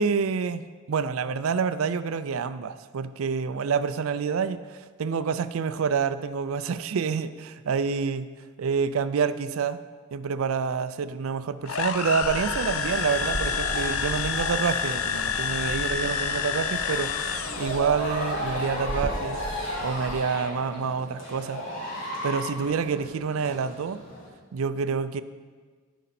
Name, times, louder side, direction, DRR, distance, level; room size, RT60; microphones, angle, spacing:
voice 1, 0.0-8.3 8.6-9.8 10.1-19.4 19.8-21.6 22.2-24.0 24.5-25.2, right 5 dB, 85° right, 13 dB, 0.4 m, -28 dB
sound 1, 11.6-18.0, left 7 dB, 85° left, 0.5 m, -29 dB
sound 2, 12.2-24.3, equal, 65° left, 2.9 m, -35 dB
Water, 12.2-20.2, right 1 dB, 25° right, 0.5 m, -38 dB
14.0 x 5.1 x 4.3 m, 1.5 s
head